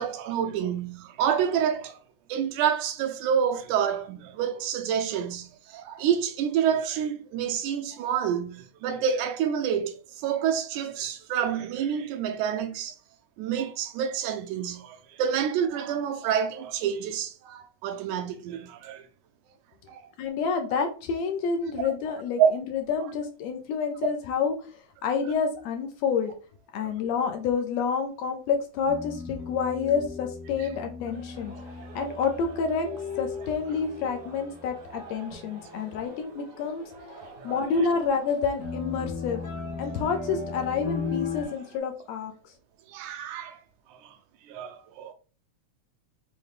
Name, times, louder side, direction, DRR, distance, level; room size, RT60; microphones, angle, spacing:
voice 1, 0.0-2.0 2.3-13.0 13.4-19.0 19.9-20.1 22.4-22.6 26.8-26.9 30.6-30.7 37.4-37.6 42.9-43.6 43.9-44.2 44.4-45.1, right 8 dB, 85° right, 2.0 m, -28 dB
voice 2, 20.2-26.3 26.7-31.5 31.9-32.9 33.2-36.9 37.4-39.4 39.8-42.5, left 5 dB, 80° left, 1.6 m, -28 dB
sound 1, 28.8-34.8 35.3-35.9 37.0-37.1 38.6-41.4, left 4 dB, 65° left, 1.5 m, -36 dB
sound 2, 31.1-41.8, right 2 dB, 55° right, 0.8 m, -49 dB
5.6 x 2.2 x 3.2 m
omnidirectional pair, 3.4 m